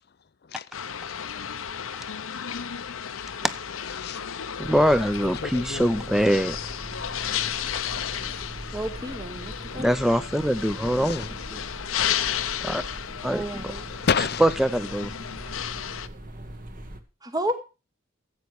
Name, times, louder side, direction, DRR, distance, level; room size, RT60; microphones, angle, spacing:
sound 1, 0.7-16.1, left 9 dB, 85° left, 0.8 m, -33 dB
voice 1, 4.0-4.3 5.2-6.0 7.3-7.7 9.7-9.8 10.6-11.3 12.3-12.6 13.6-14.5, left 6 dB, 50° left, 0.5 m, -31 dB
voice 2, 4.6-6.6 9.8-11.3 12.6-12.8 13.2-13.4 14.4-15.1, equal, ahead, 0.6 m, -23 dB
sound 2, 4.6-17.0, right 1 dB, 40° right, 1.4 m, -41 dB
voice 3, 8.7-9.9 13.3-13.9 17.2-17.5, right 1 dB, 20° right, 1.0 m, -31 dB
15.0 x 8.4 x 4.8 m
head